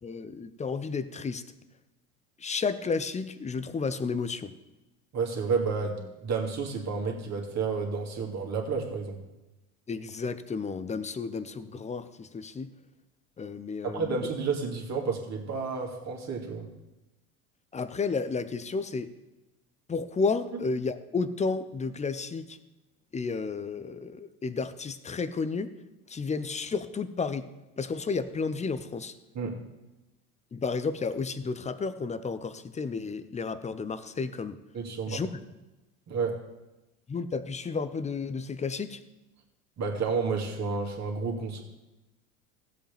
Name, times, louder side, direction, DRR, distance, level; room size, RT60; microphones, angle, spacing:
voice 1, 0.0-1.4 2.4-4.5 9.9-12.7 13.4-14.3 17.7-19.1 19.9-22.6 23.1-25.7 26.1-27.4 27.8-29.1 30.5-34.6 35.1-35.3 37.1-39.0, left 4 dB, 15° left, 13 dB, 0.6 m, -32 dB
voice 2, 5.1-9.2 13.8-16.7 29.3-29.6 34.7-35.2 36.1-36.4 39.8-41.6, right 5 dB, 40° right, 0 dB, 2.4 m, -31 dB
15.5 x 7.8 x 3.4 m, 1.0 s
hypercardioid pair, 85°, 43 cm